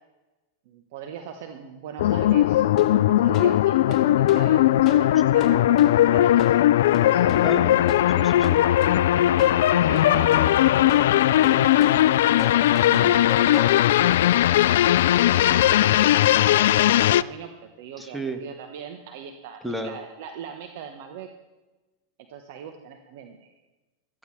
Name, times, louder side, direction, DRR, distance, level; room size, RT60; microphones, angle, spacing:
voice 1, 0.6-6.7 7.0-7.4 8.1-8.3 8.7-8.8 9.1-11.9 12.4-14.1 14.5-21.3 22.3-23.5, right 8 dB, 65° right, 6 dB, 1.2 m, -40 dB
sound 1, 2.0-17.2, left 13 dB, 70° left, 0.3 m, -19 dB
sound 2, 2.7-14.2, left 8 dB, 40° left, 2.0 m, -35 dB
voice 2, 7.4-8.6 14.0-14.6 18.0-18.4 19.6-20.0, right 1 dB, 5° right, 5 dB, 1.7 m, -34 dB
17.5 x 14.0 x 3.3 m, 1.1 s
hypercardioid pair, 110°, 0 cm